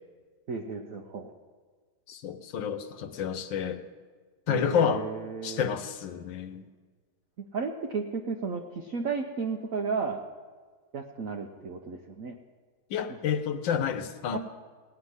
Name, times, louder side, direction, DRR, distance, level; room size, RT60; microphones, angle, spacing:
voice 1, 0.5-1.3 4.5-5.7 7.5-10.2 10.9-12.4 14.3-14.4, right 5 dB, 55° right, 2 dB, 1.1 m, -33 dB
voice 2, 2.1-3.8 4.5-5.0 5.4-6.7 12.9-14.4, left 8 dB, 85° left, 9 dB, 1.6 m, -29 dB
17.5 x 5.9 x 9.7 m, 1.5 s
omnidirectional pair, 2.0 m